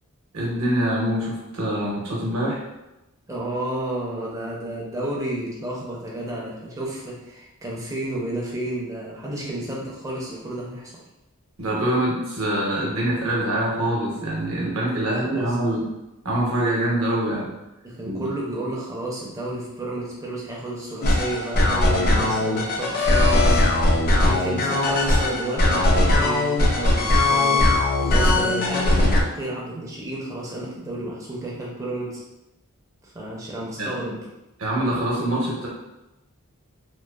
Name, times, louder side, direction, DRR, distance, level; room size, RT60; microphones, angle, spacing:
voice 1, 0.3-2.6 11.6-15.8 16.2-17.5 18.0-18.3 33.8-33.9 34.6-35.7, right 1 dB, 65° right, -4 dB, 0.8 m, -24 dB
voice 2, 3.3-10.9 15.0-15.6 17.8-23.9 24.2-32.2 33.0-34.2, right 1 dB, 15° right, -4 dB, 0.5 m, -31 dB
sound 1, 21.0-29.2, left 2 dB, 40° left, 0.3 m, -19 dB
3.0 x 2.0 x 2.2 m, 0.96 s
head